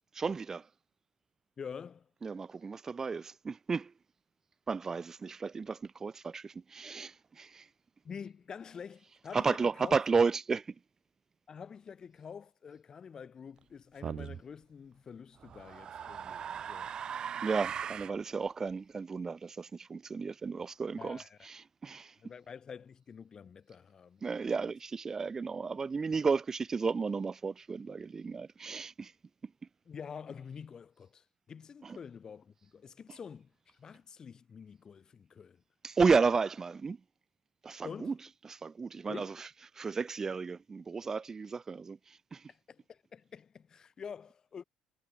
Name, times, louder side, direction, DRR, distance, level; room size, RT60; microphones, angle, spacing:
voice 1, 0.1-0.7 2.2-3.9 4.7-7.7 9.3-10.7 17.4-22.1 24.2-29.1 31.8-32.0 35.8-37.0 37.6-38.1 38.4-39.5 39.8-42.4, right 5 dB, 25° right, 0.9 m, -33 dB
voice 2, 1.6-2.1 8.0-10.0 11.5-16.9 21.0-21.4 22.2-24.4 29.8-35.6 37.8-38.2 39.1-39.4 42.5-44.6, left 6 dB, 35° left, 5.0 m, -47 dB
sound 1, 14.0-14.4 15.4-18.2, right 8 dB, 40° right, 1.4 m, -39 dB
cardioid pair, 115°, 2 cm